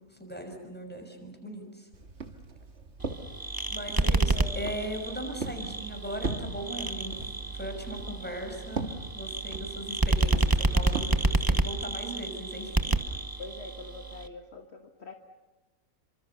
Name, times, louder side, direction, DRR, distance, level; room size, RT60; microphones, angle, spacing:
voice 1, 0.2-1.9 3.7-7.3 7.6-13.0, equal, 5° left, 3 dB, 5.9 m, -39 dB
Walk footsteps, 1.9-11.3, right 3 dB, 50° right, 2.1 m, -39 dB
sound 1, 3.0-14.3, right 2 dB, 15° right, 1.0 m, -29 dB
voice 2, 4.0-4.6 12.6-12.7 13.4-15.1, left 3 dB, 50° left, 5 dB, 1.7 m, -44 dB
29.0 x 25.5 x 7.0 m, 1.1 s
omnidirectional pair, 1.5 m